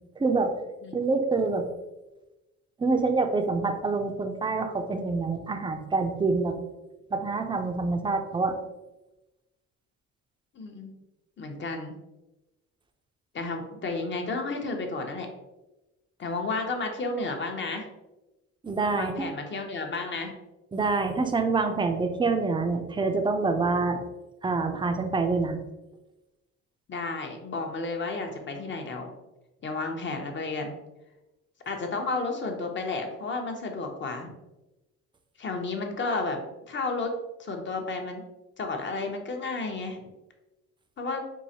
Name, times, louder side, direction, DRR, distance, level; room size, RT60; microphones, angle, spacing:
voice 1, 0.2-0.5 0.9-1.7 2.8-6.5 7.1-8.6 18.6-19.3 20.7-24.0 24.4-25.6, right 3 dB, 15° right, 6 dB, 0.4 m, -26 dB
voice 2, 10.5-10.9 11.4-11.9 13.3-15.3 16.2-17.9 18.9-20.3 26.9-29.1 29.6-30.7 31.7-34.3 35.4-36.4 36.7-37.1 37.4-38.2 38.6-40.0 41.0-41.2, left 3 dB, 40° left, 3 dB, 0.7 m, -32 dB
4.6 x 2.4 x 2.7 m, 1.0 s
cardioid pair, 90°, 30 cm